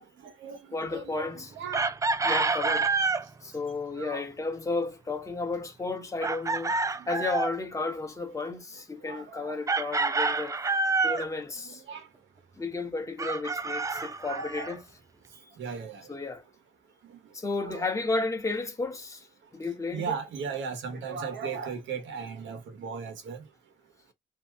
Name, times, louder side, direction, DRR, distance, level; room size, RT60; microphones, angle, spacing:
voice 1, 0.0-0.6 0.9-1.8 4.0-4.2 9.1-9.5 11.9-12.0 13.9-14.7 15.6-16.0 17.6-17.9 19.9-23.4, right 6 dB, 70° right, 1.1 m, -37 dB
voice 2, 0.7-1.5 2.2-3.0 3.4-6.8 7.1-10.6 11.0-11.8 12.6-14.8 16.1-16.4 17.3-19.3 19.5-20.0, left 3 dB, 15° left, 1.0 m, -33 dB
Chicken rooster, 1.7-3.3 6.2-7.6 9.7-11.3 13.2-14.7, right 3 dB, 15° right, 0.3 m, -28 dB
2.7 x 2.3 x 3.3 m
cardioid pair, 90°, 20 cm